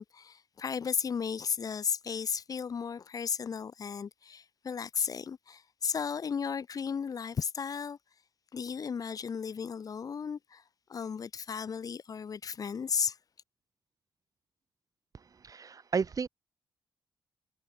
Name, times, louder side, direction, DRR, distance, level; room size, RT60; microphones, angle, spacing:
voice 1, 0.0-8.0 8.5-10.6 10.9-13.2, left 6 dB, 50° left, 1.3 m, -34 dB
voice 2, 15.1-16.3, right 5 dB, 50° right, 3.8 m, -33 dB
hypercardioid pair, 40°, 8 cm